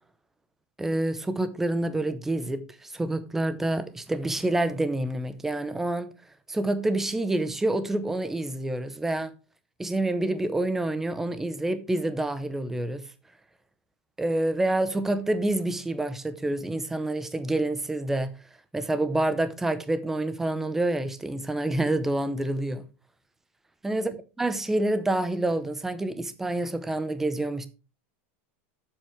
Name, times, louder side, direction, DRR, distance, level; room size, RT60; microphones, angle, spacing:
voice 1, 0.8-6.1 6.5-9.3 9.8-13.0 14.2-18.3 18.7-22.8 23.8-24.1 24.4-27.7, right 2 dB, 5° right, 0.7 m, -27 dB
8.4 x 7.7 x 4.5 m
supercardioid pair, 175°, 7 cm